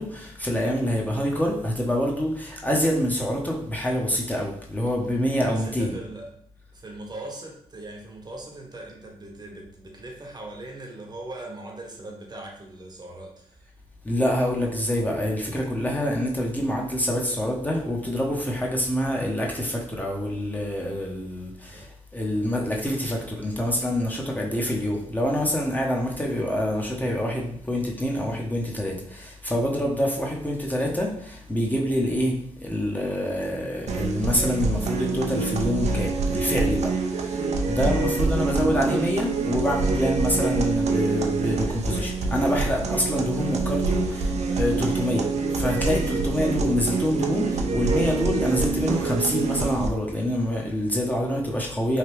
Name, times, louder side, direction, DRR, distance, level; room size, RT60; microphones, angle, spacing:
voice 1, 0.0-5.9 14.0-52.0, equal, 15° left, -2 dB, 0.7 m, -26 dB
voice 2, 5.4-6.3 6.7-13.6 21.7-21.9 24.2-24.7, right 2 dB, 35° right, 0 dB, 0.8 m, -40 dB
sound 1, 33.9-49.9, right 4 dB, 65° right, 0.5 m, -26 dB
3.2 x 2.2 x 3.1 m, 0.65 s
cardioid pair, 55°, 12 cm